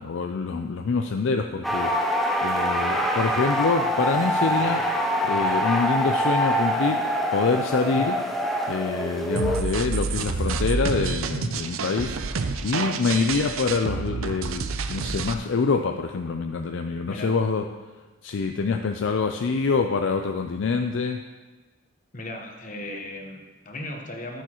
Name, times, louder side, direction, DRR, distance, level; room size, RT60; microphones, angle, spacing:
voice 1, 0.0-1.9 2.4-4.8 5.2-8.2 8.7-17.6 18.2-21.2, left 4 dB, 60° left, 5 dB, 0.4 m, -26 dB
sound 1, 1.6-9.6, equal, ahead, 0.6 m, -25 dB
sound 2, 9.3-15.3, right 4 dB, 80° right, 0.5 m, -28 dB
voice 2, 22.1-24.4, left 1 dB, 40° left, 2 dB, 1.1 m, -36 dB
13.5 x 7.0 x 3.0 m, 1.3 s
head